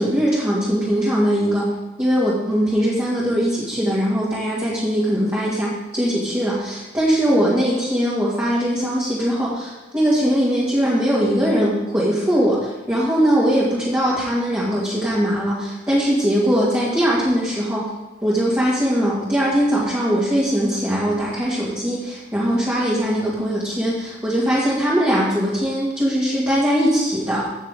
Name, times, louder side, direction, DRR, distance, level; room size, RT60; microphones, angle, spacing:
voice 1, 0.0-1.7 2.0-17.9 18.2-27.5, equal, 15° right, -8 dB, 2.3 m, -20 dB
16.0 x 6.4 x 3.7 m, 1.1 s
head